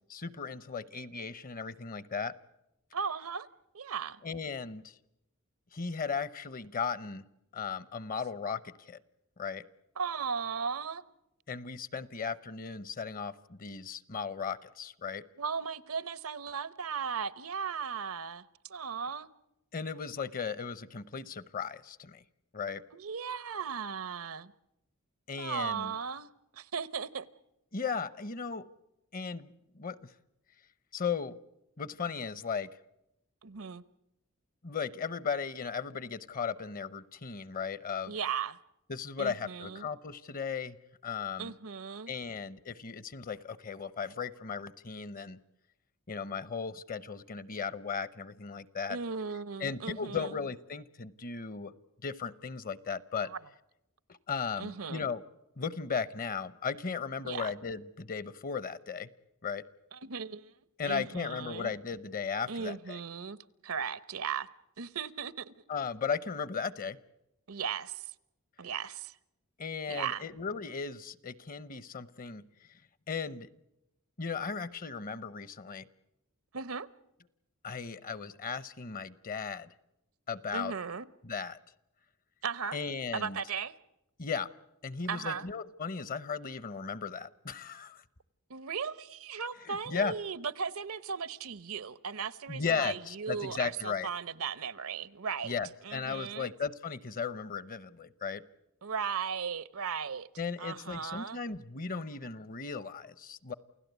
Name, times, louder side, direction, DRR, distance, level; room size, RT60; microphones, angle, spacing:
voice 1, 0.1-2.3 4.2-4.9 5.7-7.2 7.5-9.0 9.4-9.6 11.5-15.2 19.7-22.2 22.5-22.8 25.3-25.9 27.7-28.7 29.1-30.1 30.9-31.4 31.8-32.7 34.6-38.1 38.9-40.8 41.0-41.5 42.1-45.4 46.1-49.0 49.6-51.7 52.0-53.3 54.1-55.2 55.6-59.1 59.4-59.6 60.8-63.0 65.7-67.0 69.6-72.4 73.1-73.5 74.2-75.9 77.6-79.7 80.3-80.7 81.2-81.6 82.7-83.4 84.2-84.5 84.8-88.0 89.7-90.1 92.5-94.1 95.4-98.4 100.4-103.5, left 5 dB, 40° left, 0.8 m, -36 dB
voice 2, 2.9-3.5 3.7-4.2 10.0-11.0 15.4-19.3 22.9-24.5 25.4-27.3 33.4-33.8 38.1-38.6 39.2-39.9 41.4-42.1 48.9-50.4 53.3-53.4 54.6-55.1 57.2-57.5 59.9-60.5 60.9-61.7 62.5-63.4 63.6-64.5 64.8-65.5 67.5-68.1 68.6-69.2 69.9-70.2 76.5-76.9 80.5-81.1 82.4-82.8 83.1-83.7 85.1-85.5 88.5-95.5 95.8-96.5 98.8-100.3 100.6-101.4, right 6 dB, 80° right, 0.8 m, -37 dB
29.0 x 16.5 x 8.1 m
head